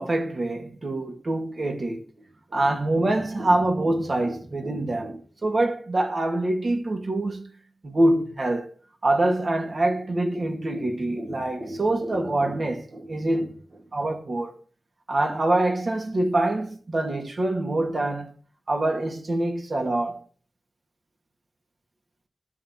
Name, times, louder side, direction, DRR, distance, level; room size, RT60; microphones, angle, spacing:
voice 1, 0.0-2.0 2.5-7.5 7.8-8.7 9.0-14.6 15.1-18.4 18.7-20.2, right 1 dB, 55° right, 2.3 m, -25 dB
12.5 x 4.4 x 7.2 m
cardioid pair, 45°, 0 cm